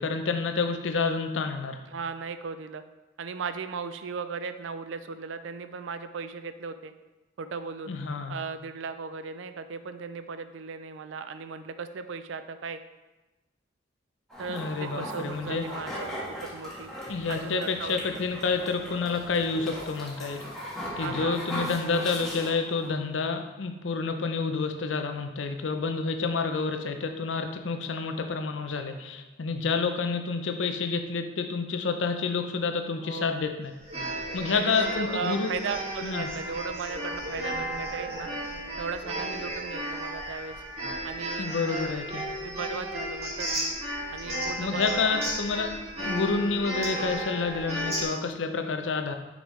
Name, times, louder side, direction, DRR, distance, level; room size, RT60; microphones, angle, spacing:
voice 1, 0.0-1.8 7.9-8.3 14.5-15.6 17.1-20.4 21.0-33.7 34.3-35.5 36.0-36.3 41.4-42.2 44.6-45.7 46.0-49.1, left 4 dB, 80° left, 6 dB, 0.6 m, -29 dB
voice 2, 1.9-2.8 3.2-6.9 7.4-7.9 8.3-12.8 14.4-16.9 17.3-18.2 21.0-21.4 33.0-33.4 34.5-38.3 38.8-40.6 41.0-41.5 42.4-43.7 44.1-45.3, right 5 dB, 85° right, 10 dB, 0.4 m, -37 dB
sound 1, 14.3-22.9, equal, 5° left, 1.4 m, -38 dB
sound 2, 33.8-48.0, right 1 dB, 35° right, 2.0 m, -34 dB
6.2 x 5.2 x 3.2 m, 1.1 s
head